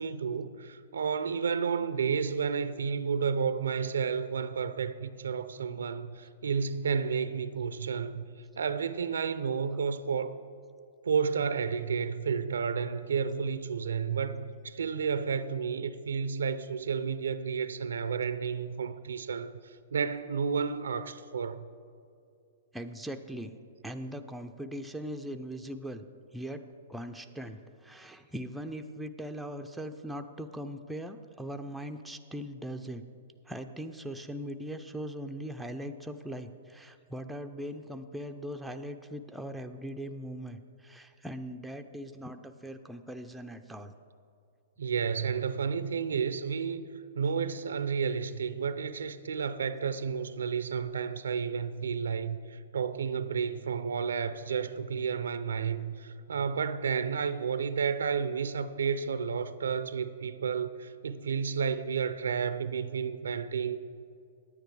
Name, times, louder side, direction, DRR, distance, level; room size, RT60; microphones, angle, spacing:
voice 1, 0.0-8.2 8.6-10.4 11.0-21.7 44.8-46.8 47.1-63.8, right 6 dB, 80° right, 0.4 m, -31 dB
voice 2, 22.7-23.5 23.8-26.1 26.3-26.6 26.9-33.0 33.5-43.9, equal, 5° right, 0.5 m, -40 dB
9.4 x 9.1 x 4.7 m
hypercardioid pair, 125°, 0 cm